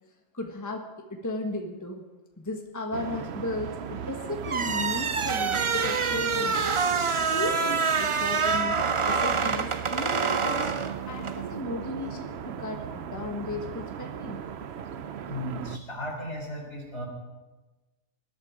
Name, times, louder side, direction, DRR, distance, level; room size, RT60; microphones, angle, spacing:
voice 1, 0.3-2.0 2.4-6.7 7.2-8.8 9.1-10.7 11.1-14.4, left 2 dB, 15° left, 3 dB, 1.3 m, -35 dB
sound 1, 2.9-15.8, right 8 dB, 65° right, 0.9 m, -37 dB
sound 2, 4.4-11.4, right 5 dB, 40° right, 0.4 m, -26 dB
voice 2, 15.2-17.1, equal, 65° left, 0 dB, 3.9 m, -35 dB
19.5 x 12.0 x 5.0 m, 1.2 s
omnidirectional pair, 1.3 m